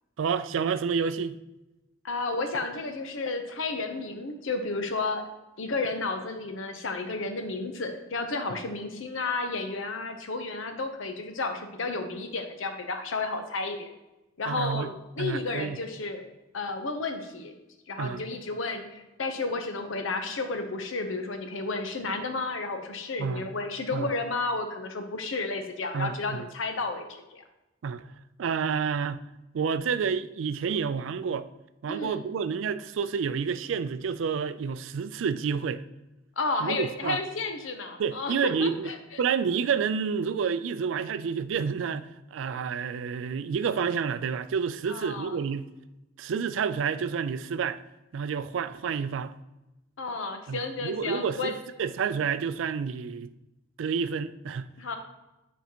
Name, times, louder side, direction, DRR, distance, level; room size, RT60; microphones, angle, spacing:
voice 1, 0.2-1.4 8.5-8.6 14.5-14.9 15.2-15.8 18.0-18.2 23.2-23.4 23.9-24.1 25.9-26.4 27.8-28.1 28.4-29.2 29.5-31.5 31.8-35.8 36.6-37.2 38.0-38.9 39.2-45.7 46.2-47.8 48.1-49.3 50.5-53.3 53.8-54.7, right 6 dB, 75° right, 0.4 m, -29 dB
voice 2, 2.0-5.2 5.6-13.9 14.4-16.2 16.5-17.5 17.9-27.4 31.9-32.2 36.4-38.3 38.6-39.2 44.9-45.4 50.0-51.5 54.8-55.0, left 3 dB, 85° left, 0.8 m, -32 dB
8.0 x 4.5 x 2.9 m
head